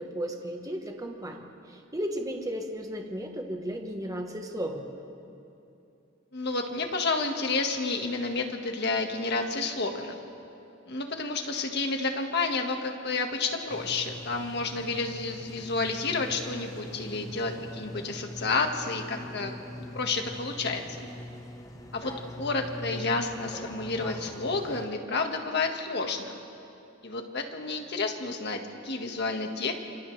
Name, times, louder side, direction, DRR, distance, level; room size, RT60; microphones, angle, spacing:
voice 1, 0.0-4.9, equal, 15° right, 2 dB, 1.3 m, -35 dB
voice 2, 6.3-10.2 10.9-19.5 19.9-21.1 21.9-22.1 22.4-26.4 27.0-29.7, left 3 dB, 55° left, 3 dB, 1.8 m, -30 dB
sound 1, 13.7-24.8, left 1 dB, 20° left, 1.1 m, -42 dB
29.0 x 27.0 x 3.4 m, 2.8 s
head